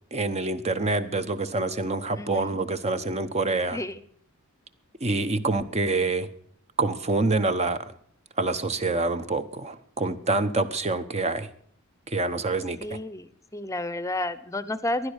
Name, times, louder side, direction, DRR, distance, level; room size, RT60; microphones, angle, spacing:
voice 1, 0.1-3.8 5.0-6.3 6.8-7.9 8.4-11.5 12.1-12.8, right 3 dB, 30° right, 11 dB, 0.9 m, -26 dB
voice 2, 2.1-2.6 3.7-4.0 12.8-15.1, left 1 dB, 15° left, 15 dB, 0.8 m, -31 dB
16.0 x 11.5 x 6.5 m, 0.62 s
head